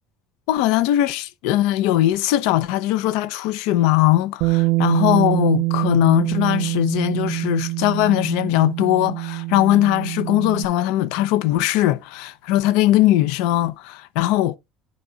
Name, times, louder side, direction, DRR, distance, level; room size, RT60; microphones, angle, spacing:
voice 1, 0.5-14.6, left 14 dB, 80° left, 0.7 m, -20 dB
Bass guitar, 4.4-10.7, right 21 dB, 65° right, 0.5 m, -24 dB
10.5 x 4.2 x 3.6 m
cardioid pair, 165°, 0 cm